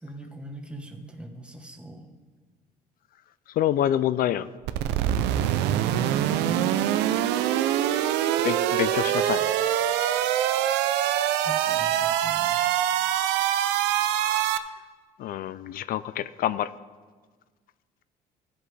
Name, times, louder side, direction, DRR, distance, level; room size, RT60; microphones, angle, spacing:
voice 1, 0.0-2.1 6.1-6.7 8.0-8.2 9.2-9.5 11.0-11.1 11.4-12.7, right 1 dB, 5° right, 3 dB, 1.1 m, -42 dB
voice 2, 3.6-4.5 8.4-9.4 15.2-16.7, left 11 dB, 60° left, 16 dB, 0.4 m, -26 dB
sound 1, 4.6-14.6, right 11 dB, 90° right, 0.5 m, -24 dB
15.5 x 7.8 x 3.3 m, 1.5 s
cardioid pair, 110°, 17 cm